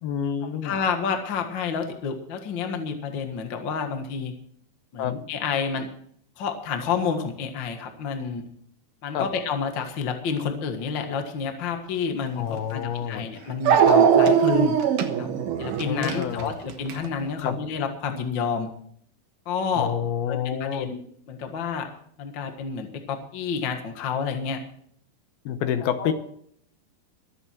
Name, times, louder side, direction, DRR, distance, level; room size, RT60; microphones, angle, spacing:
voice 1, 0.0-0.8 5.0-5.2 9.1-9.3 12.4-13.3 15.9-16.5 17.4-17.6 19.7-20.9 25.5-26.1, left 8 dB, 75° left, 9 dB, 2.8 m, -28 dB
voice 2, 0.6-4.3 4.9-5.9 6.4-8.4 9.0-14.8 15.2-15.3 15.6-18.7 19.4-19.9 20.3-21.0 21.3-21.9 22.2-24.6 26.0-26.1, left 6 dB, 55° left, 5 dB, 1.3 m, -29 dB
Dog, 12.6-12.7 13.7-17.1, right 7 dB, 65° right, 2.3 m, -20 dB
23.0 x 8.1 x 4.5 m, 0.64 s
omnidirectional pair, 4.8 m